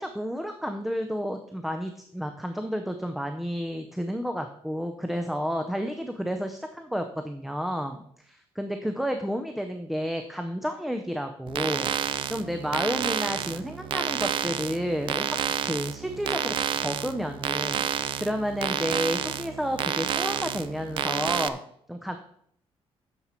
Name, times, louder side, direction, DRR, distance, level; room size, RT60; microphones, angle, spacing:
voice 1, 0.0-11.9 12.3-15.4 15.6-17.9 18.2-21.6 21.9-22.2, equal, ahead, 6 dB, 0.5 m, -31 dB
sound 1, 11.5-21.5, right 9 dB, 50° right, 0.5 m, -30 dB
9.9 x 7.1 x 4.4 m, 0.66 s
cardioid pair, 175°, 11 cm